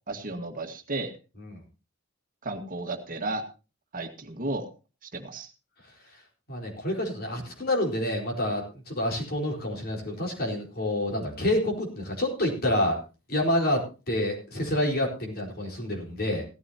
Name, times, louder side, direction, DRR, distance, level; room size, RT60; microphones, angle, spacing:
voice 1, 0.1-1.1 2.4-3.4 3.9-4.7 5.0-5.5, right 2 dB, 45° right, 5 dB, 1.8 m, -33 dB
voice 2, 6.5-13.0 13.3-16.4, left 1 dB, 50° left, 1 dB, 4.5 m, -28 dB
16.5 x 14.0 x 2.9 m, 0.31 s
head